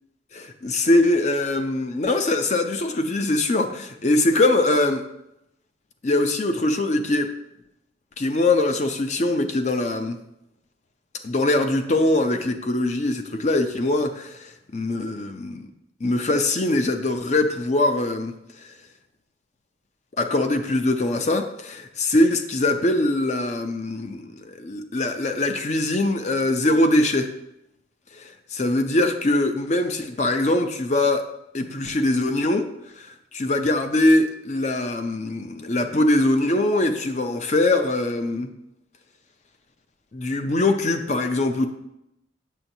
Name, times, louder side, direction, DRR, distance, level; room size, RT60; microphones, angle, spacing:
voice 1, 0.3-5.1 6.0-7.3 8.2-10.2 11.2-15.7 16.0-18.4 20.2-27.3 28.2-31.2 31.5-32.7 33.0-38.5 40.1-41.7, left 2 dB, 35° left, 7 dB, 0.5 m, -22 dB
7.3 x 6.7 x 2.7 m, 0.85 s
head